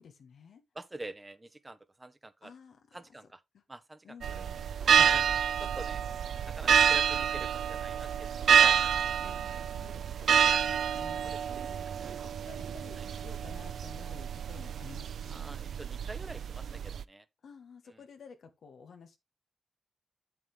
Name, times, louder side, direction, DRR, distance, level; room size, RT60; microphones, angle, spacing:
voice 1, 0.0-0.6 2.4-3.3 3.5-3.6 4.0-4.7 9.2-11.3 11.7-15.4 17.4-19.2, left 6 dB, 80° left, 1.4 m, -53 dB
voice 2, 0.7-2.5 2.9-3.4 3.7-4.4 4.8-6.0 6.5-9.3 11.2-11.4 12.0-12.1 13.0-13.1 15.3-17.2, right 2 dB, 20° right, 1.0 m, -46 dB
sound 1, 4.2-17.0, right 8 dB, 80° right, 0.4 m, -28 dB
7.8 x 7.5 x 3.3 m
cardioid pair, 65°, 0 cm